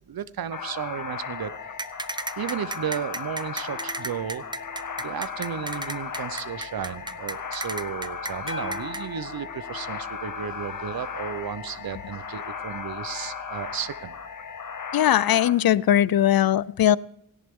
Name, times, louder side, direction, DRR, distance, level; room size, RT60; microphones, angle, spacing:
voice 1, 0.1-1.5 2.4-4.4 5.0-14.1, right 8 dB, 75° right, 16 dB, 0.7 m, -33 dB
sound 1, 0.5-15.5, left 6 dB, 60° left, 1.7 m, -36 dB
sound 2, 1.8-9.0, right 2 dB, 10° right, 0.6 m, -33 dB
sound 3, 3.7-6.5 8.5-11.7 14.5-14.6, left 3 dB, 35° left, 1.7 m, -43 dB
voice 2, 14.9-17.0, left 11 dB, 75° left, 21 dB, 0.5 m, -20 dB
17.5 x 17.0 x 3.6 m, 0.75 s
wide cardioid pair, 155°, 36 cm